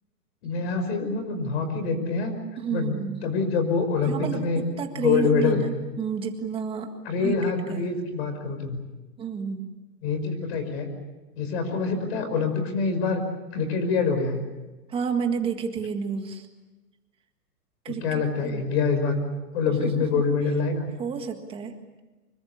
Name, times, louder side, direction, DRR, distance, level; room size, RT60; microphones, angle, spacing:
voice 1, 0.4-2.3 2.7-2.9 3.2-4.6 4.9-5.7 7.0-8.8 10.0-10.9 11.4-13.2 13.5-14.5 17.9-19.1 19.5-20.9, left 4 dB, 40° left, 8 dB, 5.7 m, -25 dB
voice 2, 2.6-3.2 4.0-6.9 7.2-7.9 9.2-9.7 14.9-16.5 17.8-18.7 19.7-20.2 21.0-21.8, right 6 dB, 10° right, 5 dB, 1.8 m, -31 dB
25.5 x 23.0 x 8.6 m, 1.2 s
hypercardioid pair, 160°, 48 cm